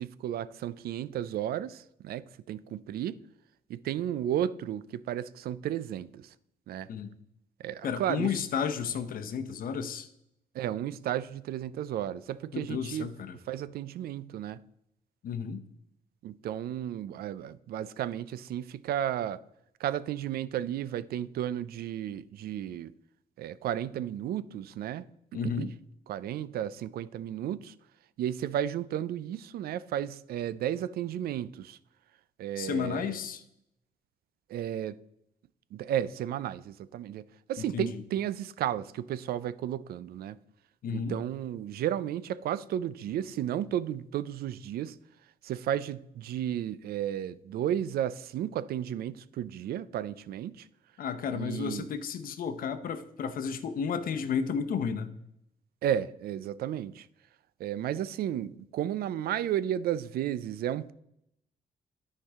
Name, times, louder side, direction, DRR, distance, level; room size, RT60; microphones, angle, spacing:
voice 1, 0.0-3.2 3.7-6.3 6.7-6.9 7.6-8.3 10.5-13.1 13.5-14.6 16.2-19.4 19.8-22.9 23.4-25.0 25.3-25.7 26.1-27.7 28.2-31.8 32.4-33.2 34.5-35.0 35.7-40.4 40.9-45.0 45.4-50.7 51.3-51.9 55.8-57.1 57.6-60.9, right 11 dB, 90° right, 0.4 m, -33 dB
voice 2, 7.8-10.1 12.5-13.4 15.2-15.6 25.3-25.7 32.6-33.4 37.6-38.0 40.8-41.2 51.0-55.1, left 7 dB, 70° left, 0.8 m, -32 dB
13.0 x 4.6 x 3.6 m
cardioid pair, 140°, 15 cm